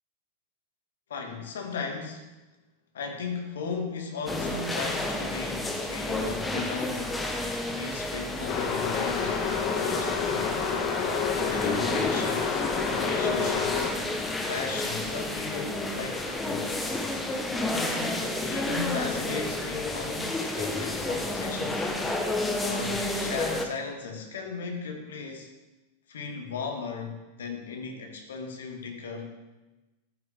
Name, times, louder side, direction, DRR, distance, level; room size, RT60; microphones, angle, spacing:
voice 1, 1.1-2.3 2.9-7.2 7.7-9.5 9.7-10.6 11.3-13.9 14.5-16.8 17.7-21.9 22.6-25.5 26.1-29.4, left 4 dB, 65° left, 3 dB, 2.6 m, -36 dB
sound 1, 4.3-23.7, left 2 dB, 10° left, 1.6 m, -31 dB
sound 2, 8.5-13.9, left 6 dB, 40° left, 1.9 m, -29 dB
14.5 x 9.5 x 5.4 m, 1.1 s
figure-of-eight pair, 90°, 0 cm